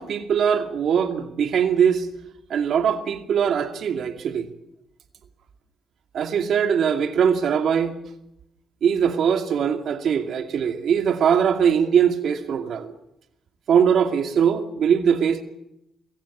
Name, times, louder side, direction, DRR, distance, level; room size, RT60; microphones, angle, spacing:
voice 1, 0.0-2.1 2.5-4.5 6.1-8.0 8.8-12.9 13.7-15.4, right 7 dB, 65° right, 7 dB, 2.4 m, -21 dB
26.0 x 16.5 x 7.3 m, 0.84 s
cardioid pair, 90°, 0 cm